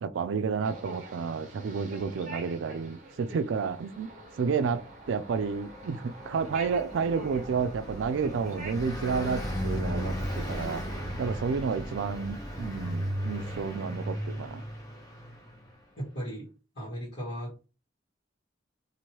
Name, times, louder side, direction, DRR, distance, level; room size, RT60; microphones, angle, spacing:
voice 1, 0.0-4.1 4.4-14.6, right 5 dB, 80° right, 0.3 m, -31 dB
sound 1, 0.6-8.7, right 2 dB, 40° right, 0.6 m, -46 dB
Car passing by, 4.7-15.7, equal, 20° left, 0.9 m, -36 dB
voice 2, 16.0-16.5 16.7-17.5, equal, 60° left, 1.4 m, -36 dB
3.0 x 2.6 x 2.9 m
head